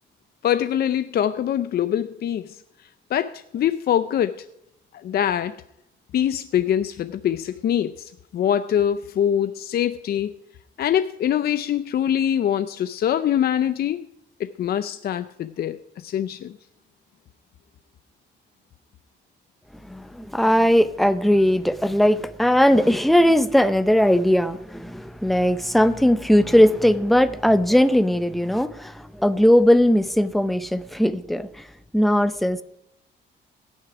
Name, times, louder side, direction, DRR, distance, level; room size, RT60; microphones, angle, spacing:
voice 1, 0.4-2.6 3.1-4.4 5.0-5.6 6.1-10.3 10.8-14.0 14.4-15.8 16.0-16.6, left 10 dB, 55° left, 11 dB, 0.5 m, -23 dB
voice 2, 19.9-31.7 31.9-32.6, equal, ahead, 12 dB, 0.6 m, -19 dB
17.5 x 6.5 x 4.8 m, 0.78 s
cardioid pair, 130°, 20 cm